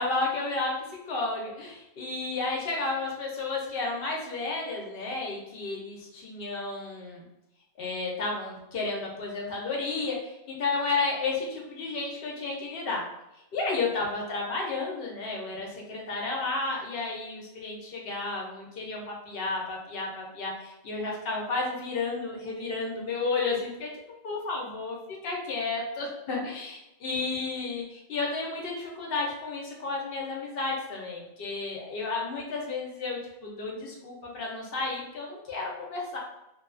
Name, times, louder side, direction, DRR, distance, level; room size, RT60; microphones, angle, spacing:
voice 1, 0.0-7.2 7.8-13.0 13.5-23.9 24.2-25.0 25.2-36.2, left 3 dB, 65° left, -1 dB, 0.8 m, -32 dB
2.6 x 2.2 x 2.4 m, 0.90 s
omnidirectional pair, 1.1 m